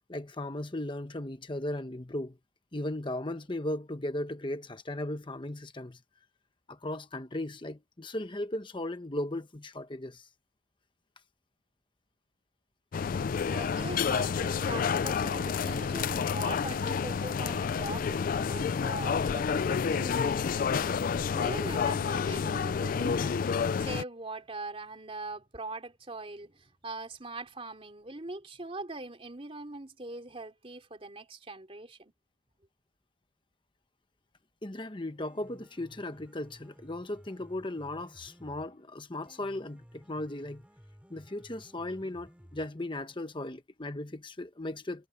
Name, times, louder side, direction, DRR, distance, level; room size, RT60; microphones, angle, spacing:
voice 1, 0.1-2.4 2.7-6.0 6.7-10.3 34.6-40.6 41.1-45.1, left 1 dB, 25° left, 1.1 m, -37 dB
sound 1, 12.9-24.0, left 6 dB, 45° left, 0.3 m, -29 dB
voice 2, 13.5-20.7 21.3-32.1, right 2 dB, 30° right, 3.0 m, -42 dB
Piano, 35.1-43.1, equal, 5° right, 5.5 m, -56 dB
head